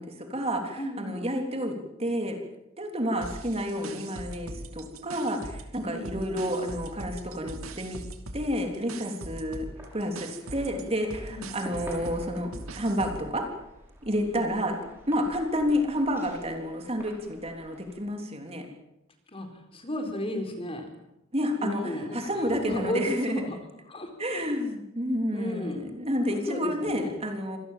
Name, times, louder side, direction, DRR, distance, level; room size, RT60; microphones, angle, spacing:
voice 1, 0.0-2.4 2.8-8.0 8.3-9.7 9.9-13.5 14.0-14.8 15.1-18.7 21.3-23.4 24.2-27.6, equal, 30° right, 4 dB, 3.4 m, -30 dB
voice 2, 0.8-1.3 5.8-6.1 11.3-11.5 14.2-14.6 19.3-20.9 21.6-23.6 23.9-24.5 25.3-25.8 26.3-27.1, left 1 dB, 25° left, 5 dB, 4.1 m, -34 dB
sound 1, 3.2-5.8 6.0-13.3, right 2 dB, 80° right, 2.5 m, -41 dB
sound 2, 9.4-18.0, equal, 10° right, 7.0 m, -49 dB
26.0 x 19.0 x 7.5 m, 0.88 s
head